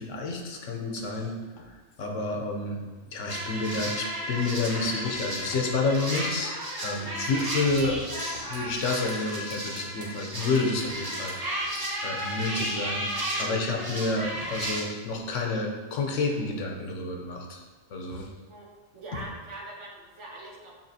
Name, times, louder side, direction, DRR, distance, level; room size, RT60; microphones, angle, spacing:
voice 1, 0.0-1.3 2.0-2.8 3.1-11.3 12.0-13.1 13.4-17.6 17.9-18.3, left 3 dB, 75° left, 1 dB, 1.0 m, -29 dB
sound 1, 3.3-14.8, right 1 dB, 25° right, 0.5 m, -33 dB
sound 2, 6.9-7.9 8.2-9.2 9.5-10.1 10.5-11.4 11.7-11.9, right 2 dB, 85° right, 1.2 m, -46 dB
voice 2, 18.9-20.7, right 1 dB, 70° right, -2 dB, 1.2 m, -42 dB
7.1 x 2.8 x 2.7 m, 1.3 s
omnidirectional pair, 1.3 m